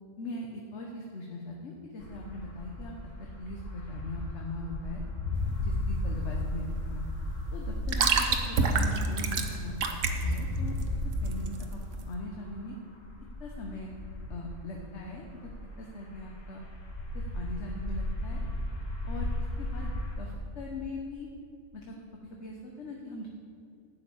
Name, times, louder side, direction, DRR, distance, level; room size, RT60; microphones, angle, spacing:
voice 1, 0.2-2.9 3.2-5.0 5.6-7.0 7.5-10.7 11.2-11.8 12.1-12.7 13.4-13.9 14.3-15.3 15.8-16.6 17.1-18.4 19.1-19.3 19.6-21.3 21.7-23.3, left 2 dB, 65° left, 0 dB, 1.3 m, -40 dB
sound 1, 2.0-15.8 16.1-20.2, left 1 dB, 85° left, 1.9 m, -35 dB
sound 2, 5.4-12.1, right 4 dB, 80° right, 1.2 m, -30 dB
11.0 x 5.7 x 8.4 m, 2.5 s
omnidirectional pair, 1.3 m